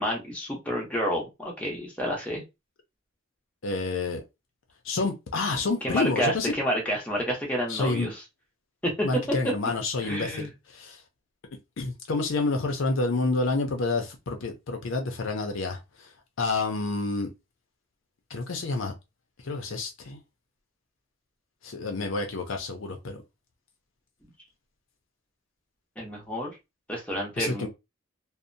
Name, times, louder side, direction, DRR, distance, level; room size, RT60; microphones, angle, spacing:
voice 1, 0.0-2.4 5.8-8.2 8.8-9.1 10.0-10.5 26.0-26.5 26.9-27.7, equal, 5° left, 0.8 m, -29 dB
voice 2, 3.6-4.2 4.8-6.5 7.7-8.1 9.0-10.5 10.7-11.0 11.8-15.8 16.4-17.3 18.3-18.9 19.4-20.2 21.6-23.2 27.4-27.7, left 3 dB, 70° left, 0.5 m, -28 dB
2.7 x 2.0 x 2.6 m
head